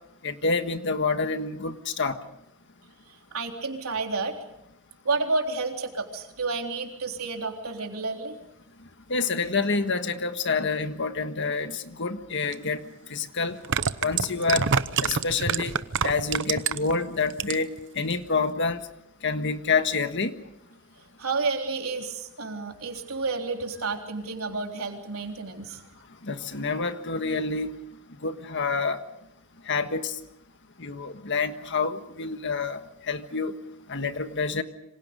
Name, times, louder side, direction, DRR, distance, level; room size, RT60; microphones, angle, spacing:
voice 1, 0.2-2.2 9.1-12.8 13.1-13.6 14.0-14.7 15.0-15.7 16.0-18.8 19.2-20.4 26.2-27.8 28.2-29.0 29.7-30.1 30.8-32.8 33.1-33.5 33.9-34.6, left 4 dB, 55° left, 8 dB, 1.5 m, -27 dB
voice 2, 3.3-4.3 5.0-8.4 21.2-25.8, right 3 dB, 75° right, 2 dB, 3.7 m, -30 dB
sound 1, 12.5-12.6 13.5-16.9 17.3-17.8 18.1-18.2, right 6 dB, 60° right, 0.9 m, -26 dB
28.0 x 26.0 x 5.3 m, 0.80 s
head